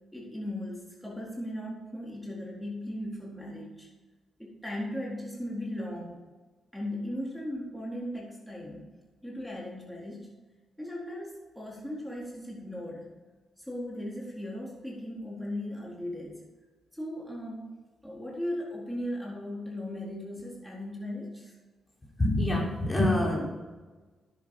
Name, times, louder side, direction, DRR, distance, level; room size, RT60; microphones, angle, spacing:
voice 1, 0.1-3.9 4.4-6.2 6.7-8.9 9.2-10.3 10.8-13.1 13.6-16.4 16.9-17.7 18.0-21.5, left 1 dB, 5° left, -3 dB, 4.0 m, -37 dB
voice 2, 22.2-23.4, left 1 dB, 25° left, -3 dB, 4.1 m, -25 dB
10.0 x 8.6 x 5.6 m, 1.3 s
supercardioid pair, 45°, 0 cm